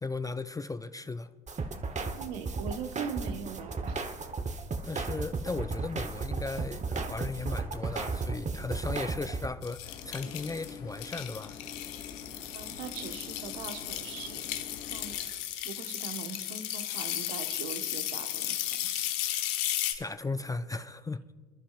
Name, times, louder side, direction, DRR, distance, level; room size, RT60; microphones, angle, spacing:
voice 1, 0.0-1.3 4.8-11.6 19.9-21.2, left 3 dB, 10° left, 0.4 m, -36 dB
sound 1, 1.5-9.5, right 4 dB, 25° right, 1.2 m, -34 dB
voice 2, 2.1-4.0 12.5-14.4 14.9-18.9, right 7 dB, 75° right, 1.4 m, -41 dB
sound 2, 9.6-19.9, left 13 dB, 70° left, 1.3 m, -35 dB
sound 3, 9.8-15.2, left 6 dB, 85° left, 2.7 m, -46 dB
29.0 x 11.5 x 2.5 m
hypercardioid pair, 75°, 30 cm